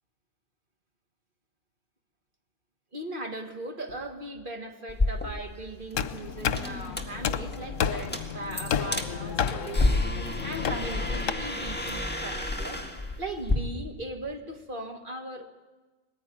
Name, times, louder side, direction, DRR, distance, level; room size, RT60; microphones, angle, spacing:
voice 1, 2.9-9.9 10.4-12.8 13.2-15.5, right 2 dB, 40° right, 3 dB, 2.0 m, -38 dB
sound 1, 4.9-13.6, left 2 dB, 10° left, 1.7 m, -31 dB
sound 2, 5.9-11.3, left 7 dB, 80° left, 1.2 m, -31 dB
21.0 x 15.5 x 9.3 m, 1.2 s
omnidirectional pair, 1.3 m